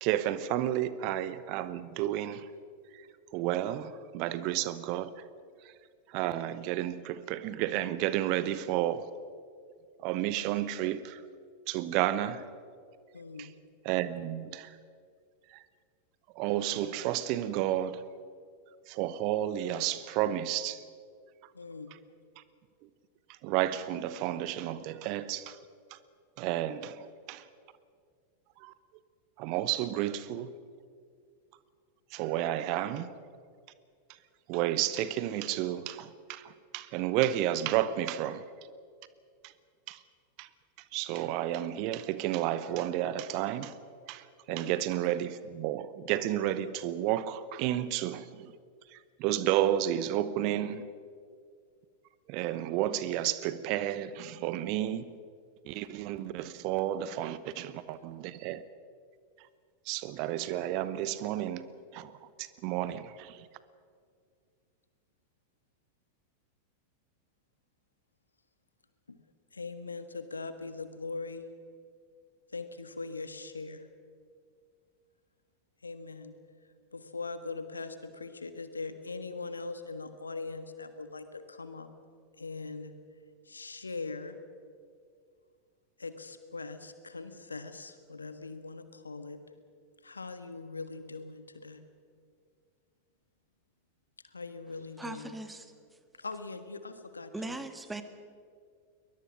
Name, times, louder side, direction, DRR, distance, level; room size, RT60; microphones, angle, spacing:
voice 1, 0.0-2.5 2.9-3.1 3.3-5.1 6.1-9.1 10.0-11.2 11.7-12.4 13.4-13.5 13.8-14.8 15.5-15.6 16.3-18.0 18.9-20.8 22.4-22.5 23.4-25.6 25.9-26.0 26.4-27.5 28.6-28.7 29.4-30.5 32.1-33.1 34.5-38.4 39.4-39.5 39.9-40.0 40.4-40.5 40.9-43.7 44.1-48.5 48.9-50.9 52.3-55.2 55.6-58.7 59.9-63.5, right 12 dB, 45° right, 0.9 m, -31 dB
voice 2, 13.1-13.6 21.5-21.9 44.5-44.7 69.1-69.2 69.5-71.4 72.5-73.9 75.8-76.3 76.9-81.9 82.4-82.9 83.4-84.4 86.0-89.4 90.0-91.8 94.2-95.3 96.2-97.6, left 3 dB, 75° left, 1.4 m, -41 dB
voice 3, 95.0-95.7 97.3-98.0, right 2 dB, 10° right, 1.6 m, -39 dB
22.5 x 20.5 x 6.0 m
figure-of-eight pair, 90°, 0 cm